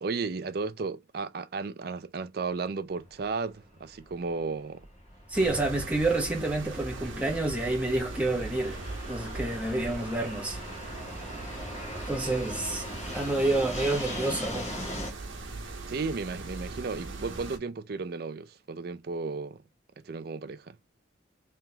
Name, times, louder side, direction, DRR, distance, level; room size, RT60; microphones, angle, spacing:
voice 1, 0.0-4.9 15.9-19.6 20.0-20.8, right 4 dB, 50° right, 0.4 m, -34 dB
Fixed-wing aircraft airplane, 2.9-15.1, equal, 35° left, 1.5 m, -41 dB
voice 2, 5.3-8.8 9.1-10.6 12.1-12.9 13.1-14.7, right 2 dB, 5° right, 1.2 m, -28 dB
sound 1, 5.3-17.6, right 2 dB, 90° right, 1.1 m, -40 dB
3.5 x 3.4 x 2.8 m
head